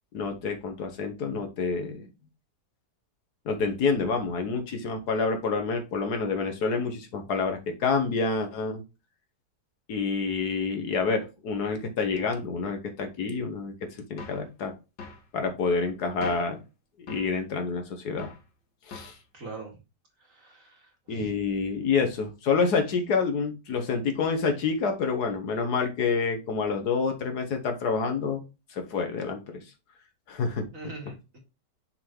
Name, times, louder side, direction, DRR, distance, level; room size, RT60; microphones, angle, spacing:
voice 1, 0.1-2.1 3.5-8.8 9.9-13.7 14.1-14.7 15.3-16.6 17.1-18.3 18.9-19.1 21.1-28.4 28.7-29.6 30.3-30.7, left 4 dB, 70° left, 5 dB, 1.6 m, -28 dB
sound 1, 14.2-14.5 15.0-15.3 16.2-16.6 17.1-17.4 18.2-18.5 18.9-19.2, left 4 dB, 90° left, 2.1 m, -42 dB
voice 2, 19.3-19.8 20.2-21.3 30.7-31.4, right 3 dB, 50° right, 0 dB, 2.5 m, -43 dB
6.5 x 3.8 x 4.5 m, 0.28 s
omnidirectional pair, 1.8 m